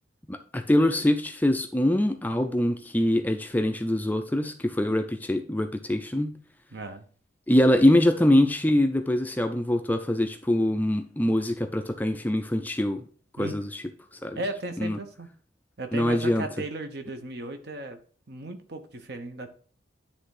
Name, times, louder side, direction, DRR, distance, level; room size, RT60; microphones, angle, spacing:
voice 1, 0.3-6.3 7.5-13.0 13.4-13.8 14.2-14.4 14.8-15.0 15.9-16.5, left 1 dB, 10° left, 0.4 m, -24 dB
voice 2, 6.7-7.1 13.4-13.6 14.4-15.3 15.8-18.0 18.3-19.5, right 2 dB, 55° right, 1.0 m, -36 dB
10.0 x 3.4 x 4.8 m
head